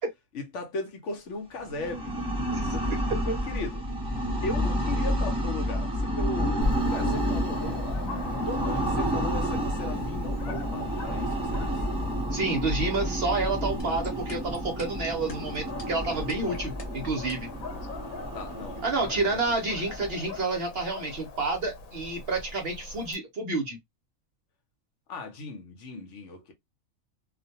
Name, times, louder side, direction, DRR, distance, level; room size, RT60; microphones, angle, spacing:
voice 1, 0.3-3.0 3.2-6.6 6.9-8.1 8.5-11.8 18.3-19.5 25.1-26.5, left 2 dB, 65° left, 1.0 m, -38 dB
sound 1, 1.6-20.4, equal, 5° right, 0.5 m, -30 dB
Dog, 6.6-23.1, left 2 dB, 90° left, 1.0 m, -41 dB
voice 2, 12.3-17.5 18.8-23.8, right 3 dB, 55° right, 0.8 m, -29 dB
sound 2, 13.8-17.6, left 3 dB, 40° left, 0.6 m, -42 dB
2.5 x 2.1 x 2.7 m
omnidirectional pair, 1.4 m